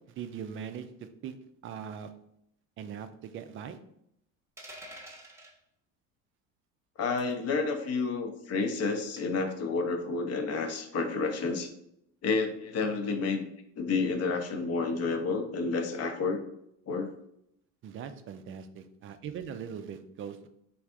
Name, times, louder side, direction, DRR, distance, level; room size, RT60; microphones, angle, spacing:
voice 1, 0.1-1.3 1.6-2.1 2.8-3.8 17.8-20.5, right 7 dB, 35° right, 9 dB, 0.4 m, -41 dB
sound 1, 4.6-5.5 7.2-7.4 9.2-9.5, right 1 dB, 5° right, 0.8 m, -47 dB
voice 2, 7.0-11.7 12.2-13.4 13.8-16.4 16.9-17.1, left 4 dB, 40° left, 6 dB, 0.7 m, -30 dB
3.3 x 2.5 x 3.5 m, 0.75 s
hypercardioid pair, 75°, 39 cm